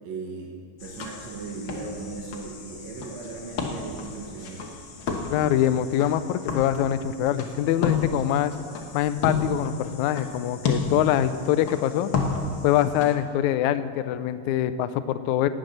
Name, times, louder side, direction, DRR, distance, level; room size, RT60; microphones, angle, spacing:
voice 1, 0.0-0.5 0.8-4.8, right 4 dB, 60° right, -1 dB, 2.3 m, -37 dB
sound 1, 0.8-13.1, left 4 dB, 65° left, 1.2 m, -32 dB
voice 2, 5.3-8.6 8.9-12.1 12.6-15.5, left 11 dB, 80° left, 11 dB, 1.7 m, -24 dB
18.0 x 7.6 x 6.7 m, 2.7 s
omnidirectional pair, 3.9 m